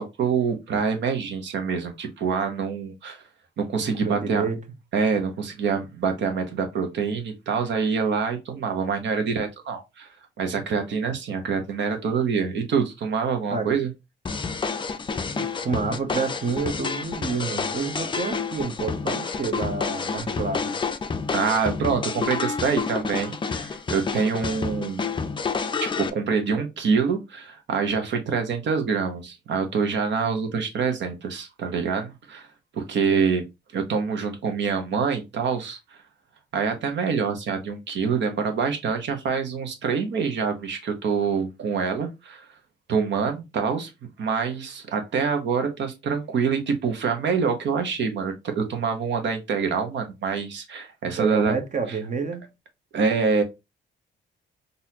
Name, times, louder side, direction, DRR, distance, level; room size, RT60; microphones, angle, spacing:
voice 1, 0.0-3.2 3.6-4.4 4.9-10.1 10.4-13.9 21.3-25.1 25.8-32.5 32.7-33.4 33.7-35.8 36.5-42.5 42.9-51.5 52.9-53.4, right 5 dB, 65° right, 1.0 m, -26 dB
voice 2, 3.8-4.6 13.5-13.7 15.3-20.8 33.1-33.3 51.2-52.5, right 5 dB, 40° right, 0.8 m, -29 dB
sound 1, 14.3-26.1, left 5 dB, 25° left, 0.4 m, -29 dB
4.0 x 2.6 x 2.8 m
cardioid pair, 90°, 20 cm